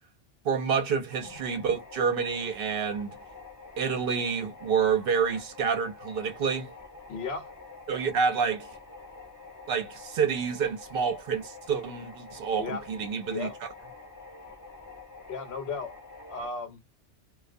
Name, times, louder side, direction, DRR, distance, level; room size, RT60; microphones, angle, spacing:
voice 1, 0.4-3.1 3.8-6.7 7.9-8.7 9.7-13.5, right 6 dB, 60° right, 0.7 m, -28 dB
sound 1, 1.1-16.5, left 3 dB, 20° left, 0.7 m, -47 dB
voice 2, 7.1-7.5 12.6-12.9 13.3-13.6 15.3-15.9 16.3-16.8, left 4 dB, 65° left, 1.0 m, -35 dB
2.2 x 2.1 x 2.5 m
omnidirectional pair, 1.2 m